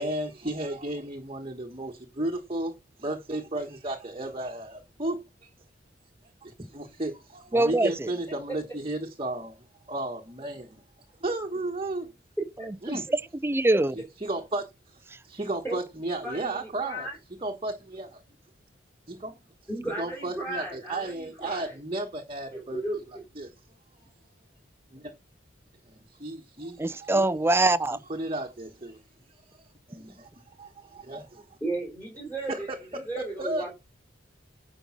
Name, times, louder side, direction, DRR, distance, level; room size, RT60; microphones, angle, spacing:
voice 1, 0.0-2.7 3.0-5.5 6.4-9.6 9.9-10.8 11.2-12.1 12.8-13.0 14.2-17.1 17.4-18.2 19.1-19.4 20.0-23.0 23.3-23.5 24.9-25.1 25.9-27.5 28.1-29.0 29.9-30.3 30.6-31.5 32.5-33.7, right 2 dB, 30° right, 1.4 m, -34 dB
voice 2, 7.5-8.1 12.6-13.9 26.8-28.0, right 2 dB, 15° right, 0.5 m, -24 dB
voice 3, 16.2-17.2 19.7-21.8 22.5-23.0 31.6-32.7 32.9-33.7, right 2 dB, 10° left, 4.1 m, -35 dB
10.0 x 5.4 x 6.0 m
head